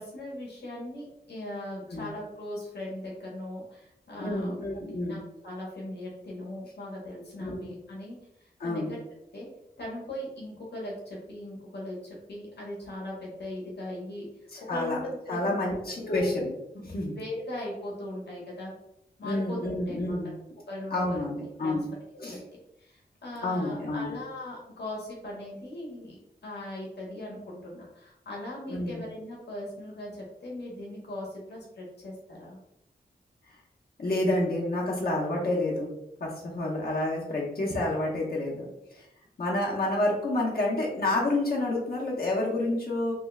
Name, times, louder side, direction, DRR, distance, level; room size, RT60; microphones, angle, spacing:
voice 1, 0.0-4.5 5.1-9.0 9.3-9.5 9.8-16.4 17.2-18.7 19.2-19.6 19.9-20.2 20.7-21.2 21.6-21.8 22.8-32.6, left 1 dB, 80° left, -4 dB, 1.1 m, -39 dB
voice 2, 4.2-5.2 7.4-7.6 8.6-8.9 14.5-15.0 15.3-16.5 16.8-17.2 19.2-20.3 20.9-21.9 22.2-22.4 23.4-24.1 28.7-29.0 34.0-35.9 36.2-38.7 38.9-39.1 39.4-43.1, left 1 dB, 65° left, -4 dB, 0.9 m, -29 dB
3.2 x 2.3 x 3.2 m, 0.85 s
wide cardioid pair, 85°, 17 cm